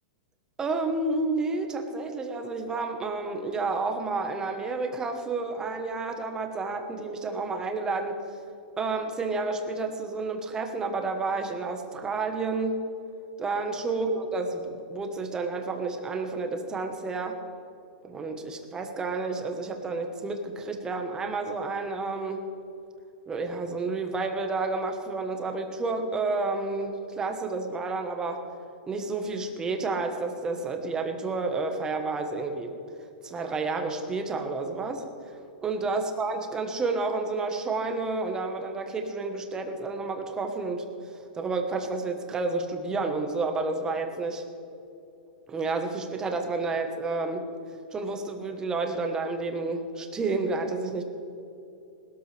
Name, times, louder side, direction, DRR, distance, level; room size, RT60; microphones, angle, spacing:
voice 1, 0.6-8.2 8.8-12.8 13.4-17.4 18.1-22.5 23.3-28.4 28.9-32.7 33.2-40.9 41.3-44.4 45.5-47.5 47.9-51.0, right 3 dB, 15° right, 5 dB, 1.3 m, -30 dB
20.0 x 13.0 x 3.4 m, 2.7 s
supercardioid pair, 155°, 5 cm